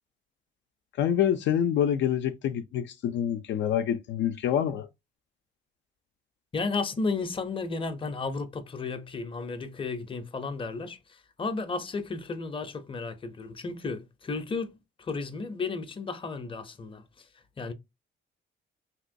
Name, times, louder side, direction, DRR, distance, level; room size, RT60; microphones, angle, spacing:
voice 1, 1.0-4.9, left 9 dB, 70° left, 0.4 m, -26 dB
voice 2, 6.5-17.3 17.6-17.7, left 4 dB, 25° left, 0.6 m, -33 dB
2.9 x 2.9 x 2.6 m
cardioid pair, 90°, 20 cm